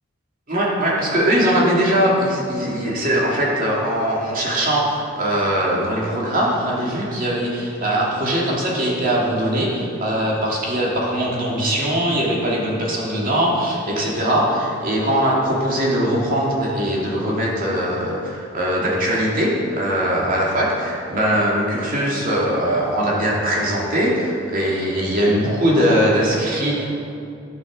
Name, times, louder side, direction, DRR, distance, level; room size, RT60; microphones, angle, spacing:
voice 1, 0.5-26.9, equal, 45° right, -4 dB, 2.6 m, -21 dB
11.5 x 6.6 x 6.3 m, 2.5 s
head